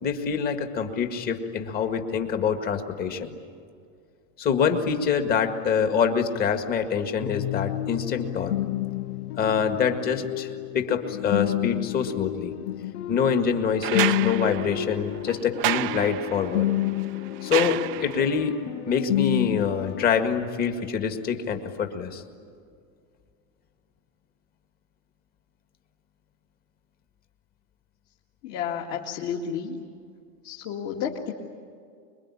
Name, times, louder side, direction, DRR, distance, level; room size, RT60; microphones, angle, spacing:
voice 1, 0.0-3.3 4.4-8.5 9.4-12.5 13.1-16.7 17.4-18.6 18.9-22.2, left 6 dB, 20° left, 6 dB, 1.9 m, -25 dB
sound 1, 7.2-20.1, left 14 dB, 90° left, 0.8 m, -30 dB
sound 2, 13.8-18.4 20.0-20.1, right 17 dB, 40° right, 0.7 m, -31 dB
voice 2, 28.4-29.8 30.4-31.3, left 7 dB, 40° left, -1 dB, 2.3 m, -31 dB
25.5 x 23.0 x 9.9 m, 2.2 s
supercardioid pair, 165°, 42 cm